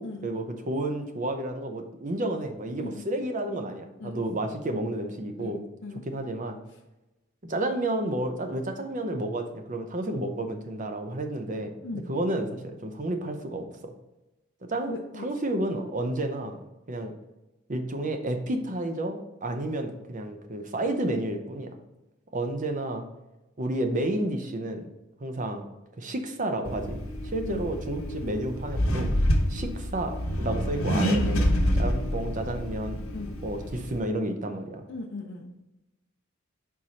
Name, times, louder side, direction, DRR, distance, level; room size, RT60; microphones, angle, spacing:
voice 1, 0.2-5.6 6.0-6.6 7.5-13.9 14.7-17.1 17.7-21.7 22.3-23.0 23.6-24.9 25.2-25.7 26.0-27.0 27.2-29.1 29.5-31.5 31.7-33.0 33.4-34.8, right 1 dB, 35° right, 6 dB, 0.6 m, -31 dB
voice 2, 5.4-6.1 11.8-12.1 14.9-15.3 27.5-27.7 33.1-33.3 34.9-35.5, left 2 dB, 60° left, 0 dB, 0.5 m, -38 dB
Accelerating revving vroom, 26.7-34.0, equal, 85° left, 1.0 m, -27 dB
4.6 x 4.2 x 5.1 m, 0.98 s
head